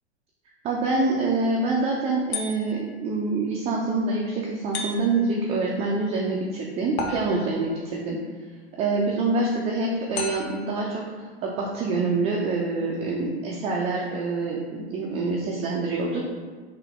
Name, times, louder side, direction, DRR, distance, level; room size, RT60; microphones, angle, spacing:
voice 1, 0.6-8.2 8.8-11.0 11.4-16.2, right 3 dB, 20° right, -3 dB, 0.4 m, -26 dB
sound 1, 2.3-3.0 4.7-5.4 7.0-7.7 10.2-10.8, left 3 dB, 70° left, 0.8 m, -34 dB
3.5 x 2.9 x 3.5 m, 1.4 s
hypercardioid pair, 105°, 34 cm